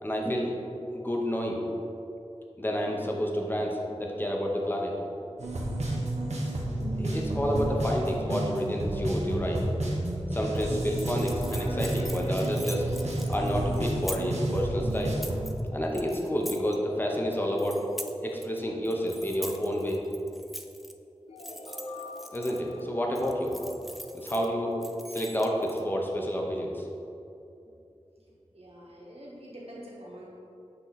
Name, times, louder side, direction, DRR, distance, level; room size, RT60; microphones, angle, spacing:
voice 1, 0.0-0.5 0.9-1.6 2.6-4.9 6.9-9.7 10.3-12.8 13.3-15.2 15.7-17.8 18.2-20.0 22.3-23.5 24.1-24.8 25.1-26.8, equal, 20° left, 0 dB, 0.8 m, -29 dB
sound 1, 5.4-15.5, right 1 dB, 80° right, 0.9 m, -30 dB
sound 2, 10.5-14.4 14.9-15.6 15.9-16.8 17.1-18.6 18.8-20.9 21.4-22.8 23.1-24.5 24.8-25.8, equal, ahead, 0.4 m, -43 dB
sound 3, 21.3-25.2, left 2 dB, 60° left, 0.4 m, -45 dB
voice 2, 28.5-30.3, equal, 65° right, -5 dB, 1.4 m, -45 dB
8.3 x 2.9 x 4.0 m, 2.7 s
wide cardioid pair, 70°, 11 cm